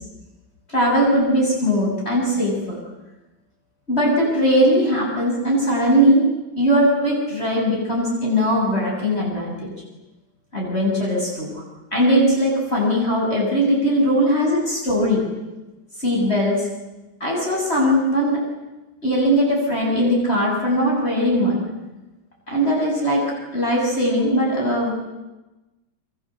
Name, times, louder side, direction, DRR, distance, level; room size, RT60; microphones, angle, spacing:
voice 1, 0.7-2.8 3.9-6.2 6.6-9.7 10.5-11.5 11.9-15.2 16.0-16.7 17.2-18.4 19.0-21.6 22.5-23.2 23.5-25.0, equal, 30° left, -3 dB, 7.9 m, -20 dB
29.0 x 25.5 x 8.1 m, 1.1 s
omnidirectional pair, 2.2 m